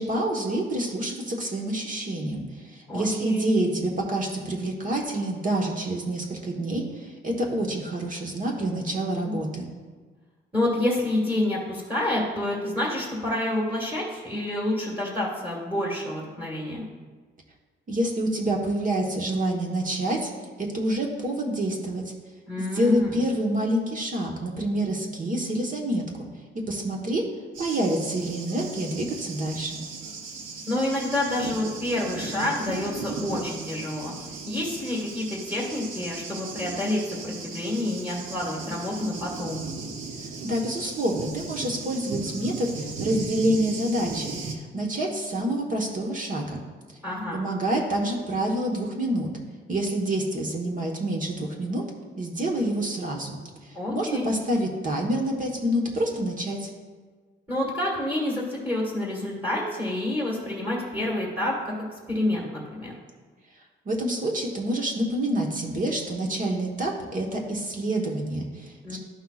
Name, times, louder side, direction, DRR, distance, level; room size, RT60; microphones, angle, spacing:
voice 1, 0.0-9.7 17.9-20.3 20.6-22.0 22.6-26.0 26.7-27.2 27.6-29.8 40.4-46.6 47.3-49.3 49.7-51.8 52.2-56.7 63.8-69.0, right 1 dB, 40° right, 0 dB, 1.2 m, -27 dB
voice 2, 2.9-3.5 8.8-9.4 10.5-16.8 22.5-23.2 30.7-34.1 34.5-39.6 47.0-47.4 53.7-54.3 57.5-61.7 62.1-63.0 68.8-69.0, left 1 dB, 10° right, -4 dB, 1.7 m, -28 dB
Thunder, 27.5-44.5, right 4 dB, 85° right, 0.9 m, -37 dB
12.0 x 5.6 x 2.4 m, 1.4 s
cardioid pair, 90°, 20 cm